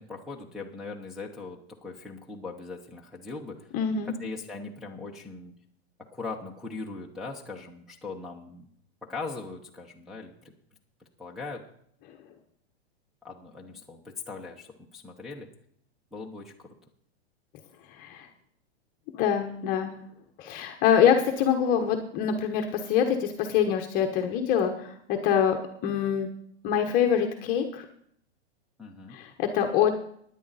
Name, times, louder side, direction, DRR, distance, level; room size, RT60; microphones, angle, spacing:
voice 1, 0.0-3.7 4.1-5.6 6.1-8.7 9.0-10.5 11.2-11.6 13.2-15.5 16.1-16.8 28.8-29.2, left 3 dB, ahead, -4 dB, 0.8 m, -40 dB
voice 2, 3.7-4.1 17.9-18.3 19.1-19.9 20.4-26.3 26.6-27.8 29.1-29.9, left 8 dB, 25° left, 4 dB, 1.0 m, -25 dB
16.5 x 10.0 x 4.1 m, 0.68 s
hypercardioid pair, 155°, 34 cm